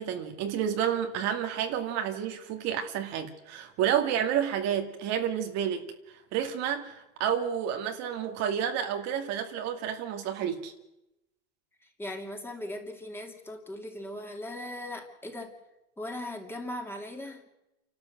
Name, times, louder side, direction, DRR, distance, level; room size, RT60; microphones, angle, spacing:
voice 1, 0.0-5.9 6.3-10.7, right 9 dB, 55° right, 2.2 m, -30 dB
voice 2, 11.8-15.5 16.0-17.5, left 1 dB, 5° left, 2.8 m, -39 dB
28.5 x 12.5 x 7.8 m
supercardioid pair, 145°, 32 cm